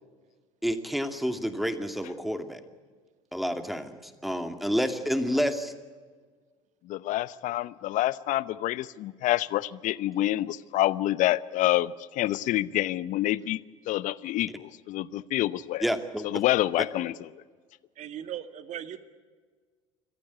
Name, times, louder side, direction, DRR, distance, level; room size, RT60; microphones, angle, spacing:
voice 1, 0.6-2.6 3.3-5.7 15.8-16.2, equal, ahead, 7 dB, 2.4 m, -29 dB
voice 2, 6.8-13.6 13.9-15.8 16.2-17.1, left 15 dB, 50° left, 19 dB, 0.8 m, -27 dB
voice 3, 18.0-19.0, right 10 dB, 50° right, 10 dB, 1.9 m, -38 dB
26.5 x 15.0 x 9.6 m, 1.5 s
hypercardioid pair, 70°, 16 cm